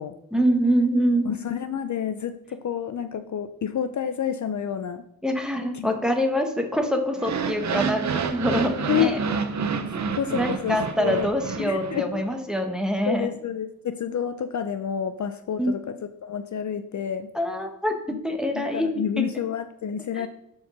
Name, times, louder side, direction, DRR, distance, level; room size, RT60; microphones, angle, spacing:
voice 1, 0.3-1.3 5.2-9.2 10.3-13.3 15.6-15.8 17.3-18.9 19.2-19.3 20.1-20.3, equal, ahead, 3 dB, 0.9 m, -25 dB
voice 2, 1.2-5.0 5.7-5.9 8.9-9.2 10.1-11.3 11.6-12.2 13.1-17.3 18.1-18.2 18.5-20.3, left 8 dB, 55° left, 10 dB, 0.5 m, -29 dB
sound 1, 7.2-12.3, right 5 dB, 50° right, 0.6 m, -29 dB
7.1 x 4.7 x 5.9 m, 0.79 s
wide cardioid pair, 165°, 35 cm